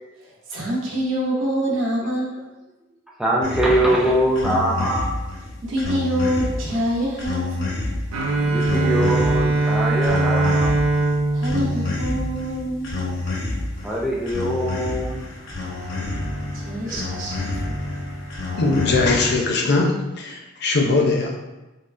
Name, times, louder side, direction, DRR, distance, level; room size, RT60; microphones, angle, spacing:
voice 1, 0.2-2.3 5.6-7.7 11.3-13.2 16.5-17.4, equal, 70° right, -3 dB, 0.8 m, -26 dB
voice 2, 3.2-5.1 8.4-10.8 13.8-15.2 16.8-17.0, right 1 dB, 5° right, -3 dB, 0.3 m, -22 dB
sound 1, 3.4-19.4, left 2 dB, 90° left, 0.7 m, -29 dB
Bowed string instrument, 8.1-13.0, right 2 dB, 85° right, 0.4 m, -22 dB
voice 3, 18.6-21.4, left 3 dB, 55° left, 1 dB, 0.5 m, -20 dB
3.6 x 2.3 x 2.4 m, 1.0 s
head